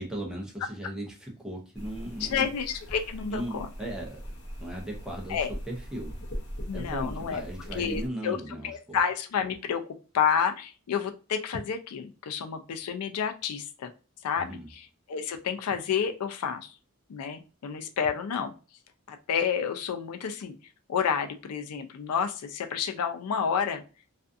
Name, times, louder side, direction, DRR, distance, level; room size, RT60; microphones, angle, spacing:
voice 1, 0.0-2.5 3.3-4.3 4.6-5.4 5.7-6.2 6.7-9.0 14.4-14.7, right 1 dB, 5° right, -2 dB, 0.6 m, -37 dB
sound 1, 1.7-8.1, equal, 50° left, 0.7 m, -40 dB
voice 2, 2.2-3.7 5.3-5.5 6.7-7.4 7.7-8.4 8.6-9.8 10.1-13.9 14.2-16.7 17.1-18.5 19.1-20.5 20.9-23.8, left 7 dB, 90° left, 7 dB, 0.4 m, -30 dB
2.4 x 2.3 x 2.5 m, 0.34 s
head